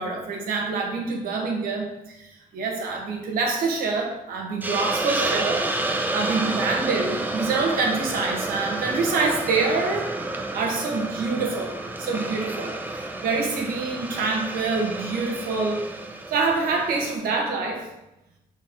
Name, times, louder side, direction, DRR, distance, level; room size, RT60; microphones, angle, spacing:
voice 1, 0.0-2.2 2.5-5.6 6.1-10.1 10.5-12.8 13.2-15.8 16.3-17.9, right 4 dB, 80° right, 1 dB, 1.3 m, -26 dB
Hiss, 4.6-17.1, right 2 dB, 10° right, 0.5 m, -30 dB
5.9 x 4.4 x 3.6 m, 0.91 s
cardioid pair, 150°, 15 cm